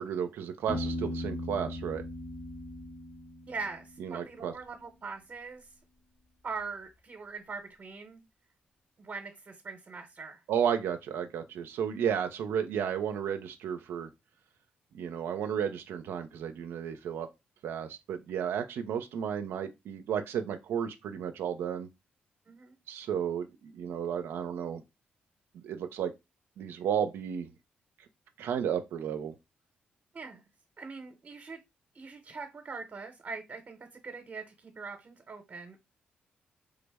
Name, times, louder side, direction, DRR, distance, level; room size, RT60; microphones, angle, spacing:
voice 1, 0.0-2.0 4.0-4.5 10.5-14.1 14.9-17.3 17.6-21.9 22.9-24.8 25.5-26.1 26.6-27.5 28.4-29.3, right 8 dB, 80° right, 0.4 m, -33 dB
Piano, 0.7-4.4, left 1 dB, 40° left, 1.3 m, -38 dB
voice 2, 3.5-5.7 6.4-8.2 9.0-10.4 22.5-22.8 30.1-30.4 30.8-31.6 31.9-35.8, right 4 dB, 45° right, 0.8 m, -42 dB
3.5 x 2.0 x 3.4 m
supercardioid pair, 60°, 4 cm